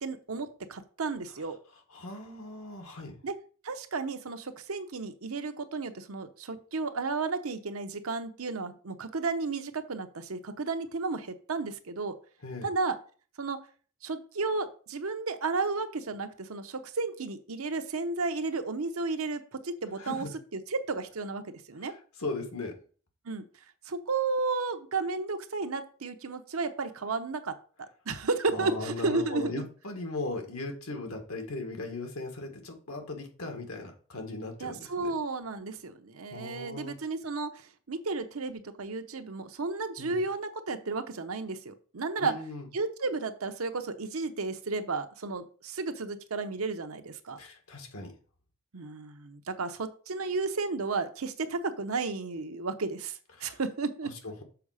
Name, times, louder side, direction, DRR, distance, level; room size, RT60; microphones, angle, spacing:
voice 1, 0.0-1.6 3.2-3.4 3.6-12.2 12.6-13.0 13.4-13.6 14.0-20.3 20.5-21.9 23.2-23.4 23.9-29.6 34.6-42.3 42.7-47.4 48.7-54.1, right 3 dB, 80° right, 8 dB, 0.9 m, -33 dB
voice 2, 1.9-3.2 12.4-12.7 20.0-20.3 21.8-22.8 28.5-35.1 36.3-36.9 40.0-40.2 42.2-42.7 47.4-48.1 53.4-53.6 54.2-54.4, left 2 dB, 85° left, 4 dB, 1.7 m, -38 dB
6.9 x 4.8 x 4.9 m, 0.41 s
head